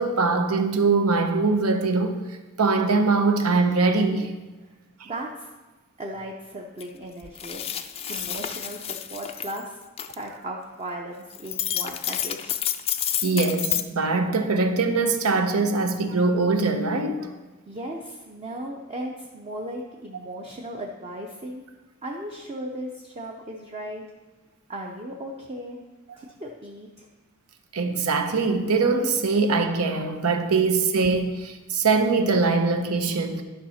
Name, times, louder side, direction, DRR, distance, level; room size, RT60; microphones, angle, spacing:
voice 1, 0.0-2.2 2.6-4.3 5.0-5.1 8.1-8.2 13.2-17.3 27.7-33.4, right 4 dB, 90° right, 0.8 m, -22 dB
voice 2, 5.0-5.5 6.0-7.6 8.1-9.8 10.1-12.6 17.7-21.6 22.0-24.0 24.7-25.8 26.2-27.1, right 1 dB, 30° right, 0.6 m, -36 dB
sound 1, 6.8-6.9 7.2-9.6 10.0-10.1 11.3-13.8, left 10 dB, 25° left, 0.3 m, -29 dB
11.5 x 5.6 x 4.2 m
head